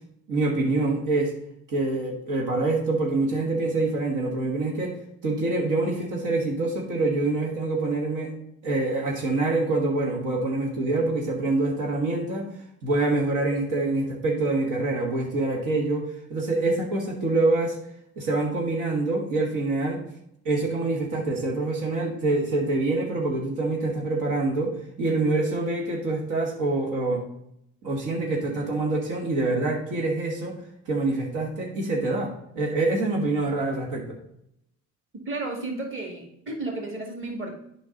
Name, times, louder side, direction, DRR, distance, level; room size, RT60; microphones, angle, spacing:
voice 1, 0.3-1.3 1.7-5.0 5.2-8.4 8.6-12.5 12.8-17.8 18.2-20.0 20.5-27.2 27.8-30.6 30.9-34.2, right 2 dB, 85° right, -1 dB, 1.8 m, -25 dB
voice 2, 35.3-37.5, right 2 dB, 40° right, 2 dB, 2.2 m, -32 dB
8.5 x 5.3 x 3.9 m, 0.77 s
cardioid pair, 90°, 30 cm